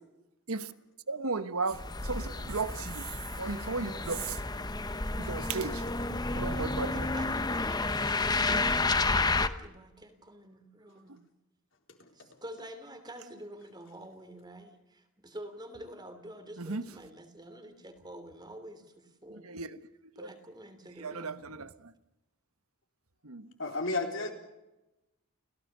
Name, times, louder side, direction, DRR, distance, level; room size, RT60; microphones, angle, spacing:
voice 1, 1.1-3.1 3.4-4.4 5.2-7.4 16.6-16.8 19.3-19.8 20.2-20.3 21.0-21.9 23.2-23.5, right 4 dB, 85° right, 1.3 m, -36 dB
sound 1, 1.7-9.5, left 3 dB, 20° left, 1.0 m, -31 dB
voice 2, 6.5-11.2 12.1-19.5 20.2-21.4, right 1 dB, 20° right, 3.2 m, -47 dB
voice 3, 23.6-24.3, left 3 dB, 60° left, 4.0 m, -31 dB
30.0 x 17.0 x 6.8 m
head